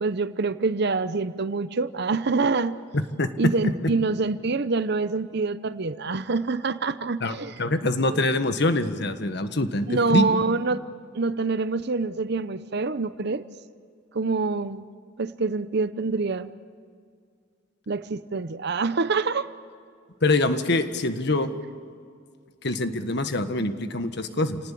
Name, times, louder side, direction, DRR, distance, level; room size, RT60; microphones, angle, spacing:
voice 1, 0.0-2.8 3.4-7.5 8.1-8.2 9.9-10.8 11.1-13.4 14.1-14.8 15.2-16.5 17.9-19.5, right 4 dB, 60° right, 13 dB, 0.7 m, -26 dB
voice 2, 2.9-3.3 7.2-9.9 10.1-10.2 20.2-21.5 22.6-24.6, left 2 dB, 60° left, 9 dB, 1.6 m, -24 dB
29.0 x 18.5 x 8.6 m, 2.1 s
head